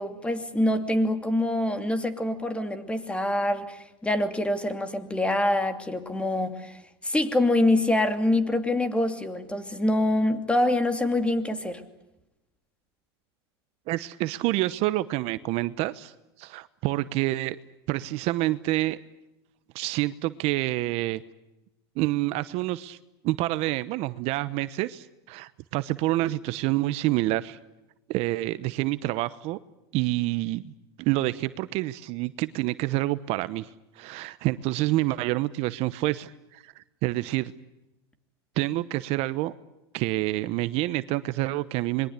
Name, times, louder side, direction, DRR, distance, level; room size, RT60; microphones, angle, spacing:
voice 1, 0.0-11.8, left 1 dB, 10° left, 9 dB, 2.6 m, -25 dB
voice 2, 13.9-16.1 16.4-17.6 17.9-19.0 19.7-21.2 22.0-23.0 23.2-27.6 28.1-29.6 29.9-30.7 31.0-33.7 34.0-37.5 38.6-39.5 39.9-42.1, right 17 dB, 50° right, 14 dB, 1.0 m, -27 dB
26.5 x 22.0 x 8.3 m, 0.94 s
supercardioid pair, 120°, 14 cm